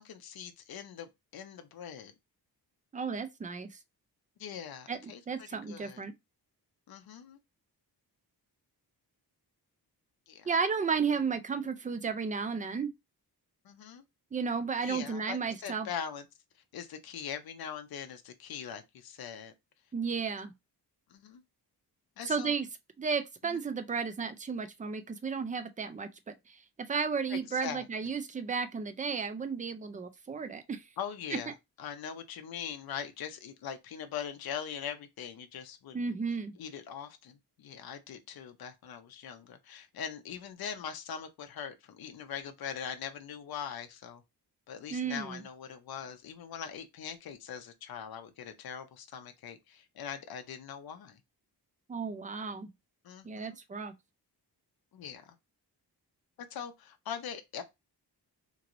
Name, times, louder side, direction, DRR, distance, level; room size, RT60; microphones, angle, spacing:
voice 1, 0.0-2.1 4.4-6.0 6.9-7.4 10.3-10.5 13.6-14.0 14.8-16.2 16.7-19.5 21.1-21.4 22.2-22.5 23.4-23.6 27.3-27.8 31.0-36.0 36.6-44.2 44.7-51.2 53.0-53.6 54.9-55.3 56.5-57.6, left 8 dB, 60° left, 0.6 m, -42 dB
voice 2, 2.9-3.7 4.9-6.1 10.5-12.9 14.3-15.9 19.9-20.5 22.2-22.7 23.0-26.6 26.9-30.8 35.9-36.5 44.9-45.4 51.9-52.7 53.2-53.9, right 5 dB, 20° right, 0.3 m, -33 dB
3.0 x 2.9 x 2.5 m
wide cardioid pair, 160°, 41 cm